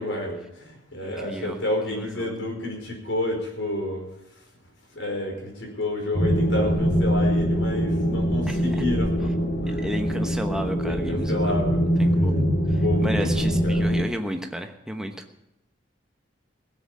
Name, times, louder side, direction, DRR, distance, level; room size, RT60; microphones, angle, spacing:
voice 1, 0.0-4.1 4.9-9.9 10.8-11.8 12.8-13.9, left 1 dB, 80° left, 1 dB, 5.0 m, -30 dB
voice 2, 1.0-1.6 1.9-2.3 8.5-8.6 9.7-11.6 12.0-15.3, equal, 5° right, 4 dB, 1.1 m, -33 dB
sound 1, 6.1-14.0, equal, 50° left, 2.1 m, -23 dB
17.0 x 8.0 x 8.7 m, 0.86 s
head